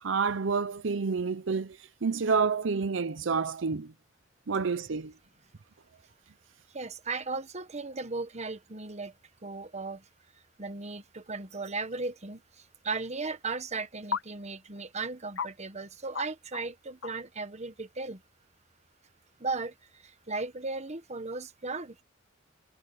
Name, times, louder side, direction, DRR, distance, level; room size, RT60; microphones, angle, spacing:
voice 1, 0.0-3.9 4.5-5.1, right 5 dB, 70° right, 0.7 m, -29 dB
voice 2, 6.7-9.1 9.4-10.0 10.6-18.2 19.4-22.0, right 3 dB, 35° right, 1.2 m, -36 dB
sound 1, 11.9-12.0 14.1-14.3 14.8-14.9 15.4-15.5 16.1-16.3 16.5-16.6 17.0-17.3, left 5 dB, 80° left, 1.2 m, -33 dB
head